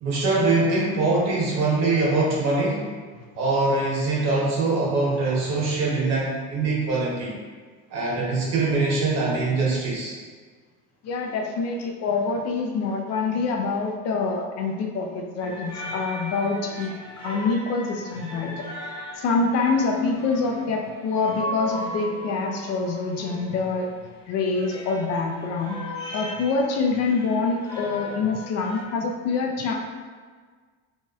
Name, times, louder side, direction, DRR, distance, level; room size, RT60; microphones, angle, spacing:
voice 1, 0.0-2.9 3.4-7.4 7.9-10.1, right 3 dB, 55° right, -5 dB, 1.1 m, -23 dB
voice 2, 11.0-16.9 17.2-18.7 19.2-23.9 24.3-25.8 26.1-29.7, left 4 dB, 50° left, 1 dB, 0.5 m, -25 dB
sound 1, 15.4-28.8, left 1 dB, 15° left, 0.7 m, -38 dB
3.0 x 2.6 x 2.3 m, 1.5 s
cardioid pair, 120°, 32 cm